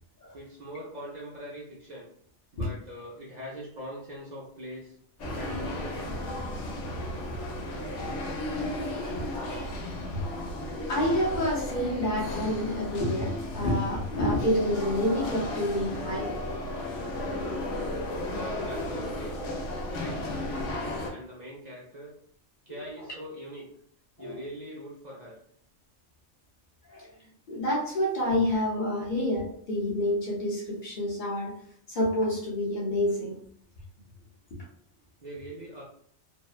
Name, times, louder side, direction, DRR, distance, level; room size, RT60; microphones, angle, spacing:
voice 1, 0.3-2.1 2.5-4.9 5.3-6.3 18.0-19.4 19.9-22.1 22.7-23.7 24.2-25.4 35.2-35.8, equal, 50° right, -5 dB, 0.5 m, -42 dB
sound 1, 5.2-21.1, left 1 dB, 80° left, 1.0 m, -34 dB
voice 2, 10.9-16.3 24.2-24.4 26.9-27.1 27.5-31.5 31.9-33.4 34.5-34.6, left 1 dB, 50° left, -2 dB, 0.7 m, -28 dB
2.7 x 2.0 x 2.3 m, 0.63 s
omnidirectional pair, 1.2 m